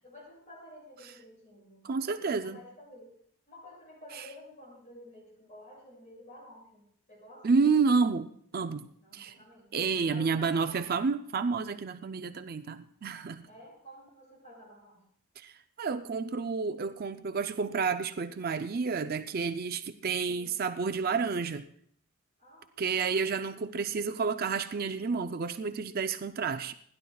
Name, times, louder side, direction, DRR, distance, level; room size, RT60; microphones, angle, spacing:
voice 1, 0.0-3.2 3.5-7.5 9.0-9.6 9.9-11.1 13.5-15.0 20.3-20.7 22.4-22.9, left 1 dB, 35° left, 7.3 m, -52 dB
voice 2, 1.8-2.6 4.2-4.3 7.4-8.9 9.1-9.4 9.7-13.4 15.4-21.7 22.8-26.7, right 5 dB, 40° right, 0.4 m, -30 dB
28.5 x 11.0 x 2.3 m
head